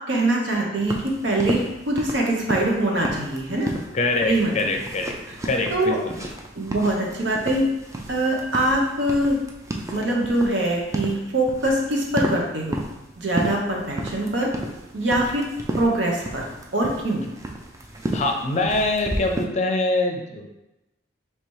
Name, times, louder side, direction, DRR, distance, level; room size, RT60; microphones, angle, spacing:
voice 1, 0.1-3.7 4.2-4.8 5.7-6.0 6.5-7.7 8.1-9.4 9.9-12.8 13.2-14.5 14.9-15.4 15.8-16.4 16.7-17.2, right 1 dB, 70° right, -1 dB, 0.9 m, -23 dB
sound 1, 0.9-19.4, right 1 dB, 15° right, 0.4 m, -33 dB
voice 2, 3.9-5.2 5.4-6.1 18.1-20.6, left 2 dB, 40° left, 3 dB, 0.5 m, -24 dB
3.3 x 2.9 x 4.6 m, 0.95 s
head